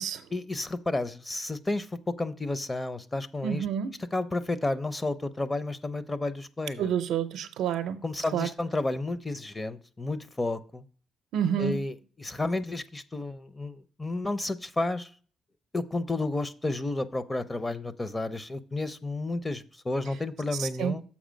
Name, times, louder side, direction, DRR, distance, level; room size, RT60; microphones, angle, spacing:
voice 1, 0.3-3.7 4.1-6.9 8.0-10.8 11.6-15.1 15.7-21.0, left 2 dB, 20° left, 0.6 m, -31 dB
voice 2, 3.4-3.9 6.8-8.0 8.3-8.5 11.3-11.8 20.6-20.9, right 9 dB, 85° right, 0.5 m, -29 dB
7.2 x 5.0 x 5.1 m
cardioid pair, 90°, 0 cm